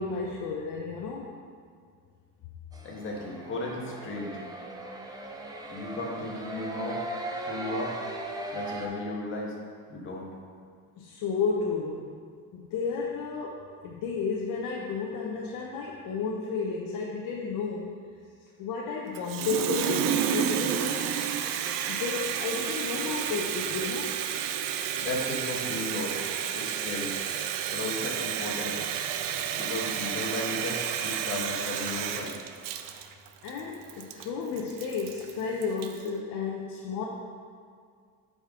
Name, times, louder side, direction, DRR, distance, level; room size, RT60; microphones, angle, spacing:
voice 1, 0.0-1.3 11.0-12.2 12.5-18.0 18.6-21.1 21.9-24.1 33.4-37.0, left 4 dB, 60° left, -2 dB, 0.8 m, -32 dB
sound 1, 2.7-8.9, right 2 dB, 10° right, 0.5 m, -38 dB
voice 2, 2.8-4.4 5.7-7.0 7.3-8.0 8.5-9.5 9.9-10.3 25.0-26.2 26.5-27.2 27.7-28.8 29.5-32.4, left 2 dB, 35° left, -2 dB, 1.3 m, -35 dB
Water tap faucet, 19.1-36.1, right 9 dB, 65° right, 0.5 m, -31 dB
7.9 x 5.2 x 3.7 m, 2.1 s
cardioid pair, 145°, 36 cm